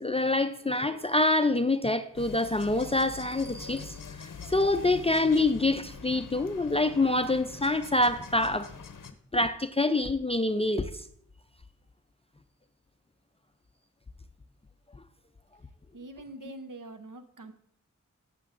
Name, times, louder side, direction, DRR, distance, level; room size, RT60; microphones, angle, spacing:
voice 1, 0.0-8.7 9.3-11.0, left 2 dB, 20° left, 0.4 m, -26 dB
sound 1, 2.2-9.1, left 5 dB, 90° left, 0.6 m, -44 dB
voice 2, 15.9-17.5, right 2 dB, 80° right, 0.8 m, -44 dB
14.5 x 6.8 x 2.5 m
wide cardioid pair, 75°, 31 cm